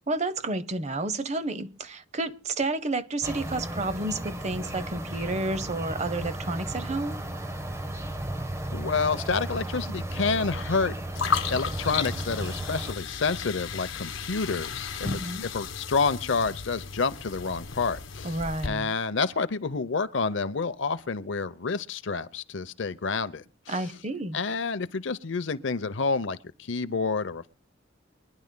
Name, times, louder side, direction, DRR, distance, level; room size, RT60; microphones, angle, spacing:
voice 1, 0.1-7.2 15.0-15.5 18.2-18.9 23.7-24.4, right 2 dB, 35° right, 0.7 m, -30 dB
sound 1, 3.2-12.9, right 1 dB, 15° right, 1.1 m, -34 dB
voice 2, 8.7-10.9 11.5-15.1 15.5-18.4 18.6-23.8 24.3-27.5, left 4 dB, 60° left, 0.7 m, -29 dB
sound 2, 11.1-18.7, left 6 dB, 80° left, 1.4 m, -34 dB
24.5 x 10.5 x 2.2 m
head